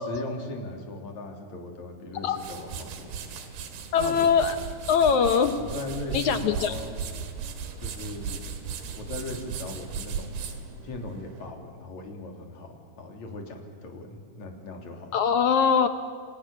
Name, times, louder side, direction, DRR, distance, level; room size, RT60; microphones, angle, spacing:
voice 1, 0.0-3.2 3.9-4.3 5.6-7.0 7.8-8.4 8.9-10.4 10.8-12.7 13.0-15.2, left 2 dB, 45° left, 2 dB, 4.4 m, -38 dB
sound 1, 2.1-11.5, right 6 dB, 80° right, 4.1 m, -37 dB
voice 2, 3.9-4.6 4.9-5.6 6.1-6.8 15.1-15.9, left 6 dB, 75° left, 9 dB, 1.8 m, -22 dB
29.5 x 25.0 x 7.2 m, 2.1 s
omnidirectional pair, 4.6 m